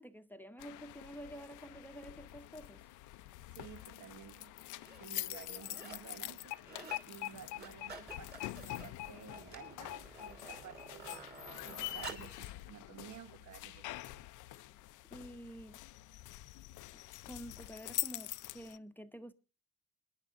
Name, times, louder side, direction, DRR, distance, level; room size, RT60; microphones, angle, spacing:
voice 1, 0.0-2.8 15.1-15.8 16.9-19.3, equal, 5° left, 0.8 m, -49 dB
sound 1, 0.6-18.8, left 16 dB, 80° left, 0.5 m, -45 dB
voice 2, 3.5-4.5 5.0-6.5 7.1-11.3 11.6-14.1, right 8 dB, 75° right, 1.1 m, -53 dB
sound 2, 3.8-3.9 4.6-5.0 5.4-6.1 6.4-7.1 7.4-12.4 13.0-13.1, right 4 dB, 35° right, 3.0 m, -51 dB
25.5 x 10.0 x 2.5 m
cardioid pair, 90°, 30 cm